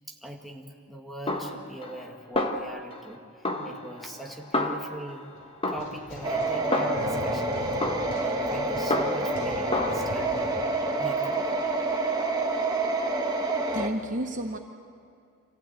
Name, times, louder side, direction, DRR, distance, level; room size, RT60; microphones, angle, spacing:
voice 1, 0.1-5.3 5.7-10.6 11.0-11.6, right 1 dB, ahead, 1 dB, 1.9 m, -41 dB
Snare drum, 1.3-2.1 2.4-3.1 3.4-5.2 5.6-7.3 7.8-9.4 9.7-10.0, left 2 dB, 25° left, 1.4 m, -31 dB
sound 1, 5.4-11.8, left 1 dB, 65° left, 5.5 m, -41 dB
sound 2, 6.2-13.9, right 2 dB, 20° right, 1.6 m, -28 dB
voice 2, 13.6-14.6, right 1 dB, 40° right, 5 dB, 0.9 m, -31 dB
25.5 x 15.5 x 8.9 m, 2.4 s
head